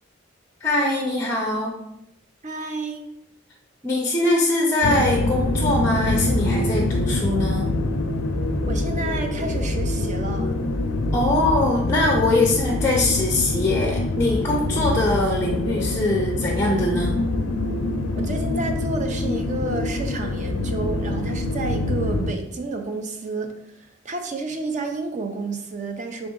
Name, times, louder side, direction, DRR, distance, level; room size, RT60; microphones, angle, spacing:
voice 1, 0.6-1.7 3.8-7.7 11.1-17.2, left 2 dB, 15° left, -1 dB, 0.5 m, -22 dB
voice 2, 2.4-3.1 8.6-10.5 18.1-23.5 23.8-26.3, right 3 dB, 35° right, 4 dB, 0.5 m, -30 dB
sound 1, 4.8-22.3, left 2 dB, 75° left, 0.4 m, -25 dB
3.8 x 3.5 x 3.8 m, 0.80 s
head